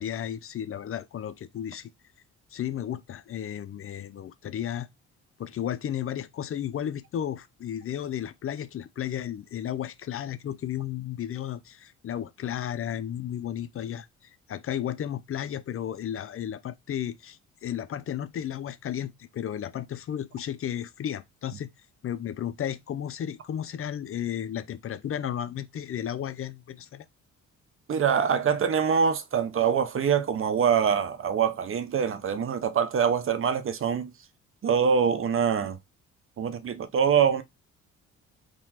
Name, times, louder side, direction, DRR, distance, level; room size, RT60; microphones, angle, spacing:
voice 1, 0.0-1.9 2.5-4.9 5.4-21.7 22.0-27.1, left 10 dB, 45° left, 0.5 m, -33 dB
voice 2, 27.9-34.1 34.6-35.8 36.4-37.4, right 7 dB, 45° right, 0.6 m, -24 dB
3.8 x 2.9 x 2.8 m
cardioid pair, 90°, 30 cm